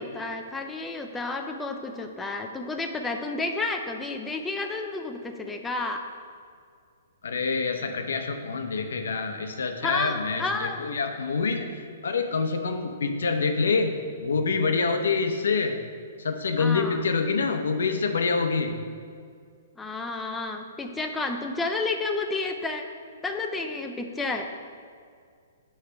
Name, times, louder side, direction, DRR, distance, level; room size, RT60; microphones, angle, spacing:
voice 1, 0.0-6.0 9.8-11.0 16.6-17.0 19.8-22.9 23.2-24.5, left 3 dB, 5° left, 4 dB, 0.3 m, -31 dB
voice 2, 7.2-13.9 14.2-15.8 16.2-18.8, left 4 dB, 90° left, 6 dB, 0.8 m, -26 dB
8.4 x 3.3 x 5.8 m, 2.2 s
hypercardioid pair, 170°, 0 cm